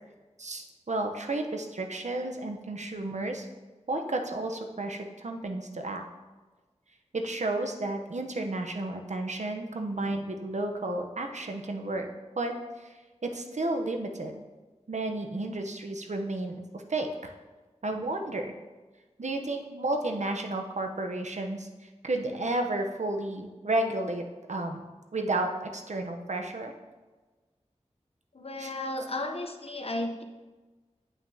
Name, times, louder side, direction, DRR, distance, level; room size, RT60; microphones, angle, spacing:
voice 1, 0.4-3.5 3.9-6.0 7.1-12.1 12.4-12.5 12.8-14.4 14.9-17.3 17.8-18.5 19.2-21.7 22.0-24.2 24.5-24.8 25.1-26.7 28.6-28.7, right 2 dB, 75° right, 4 dB, 0.7 m, -32 dB
voice 2, 28.3-30.2, left 1 dB, 55° left, 4 dB, 0.7 m, -34 dB
9.7 x 5.8 x 2.7 m, 1.3 s
wide cardioid pair, 55°, 12 cm